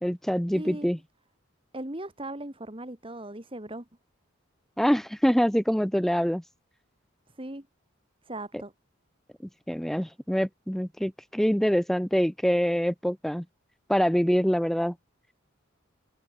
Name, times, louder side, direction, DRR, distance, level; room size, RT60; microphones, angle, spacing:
voice 1, 0.0-1.0 4.8-6.4 9.7-13.5 13.9-15.0, equal, ahead, 0.5 m, -25 dB
voice 2, 0.5-0.9 1.7-3.9 7.3-7.7 8.2-8.7, right 1 dB, 25° right, 1.9 m, -38 dB
head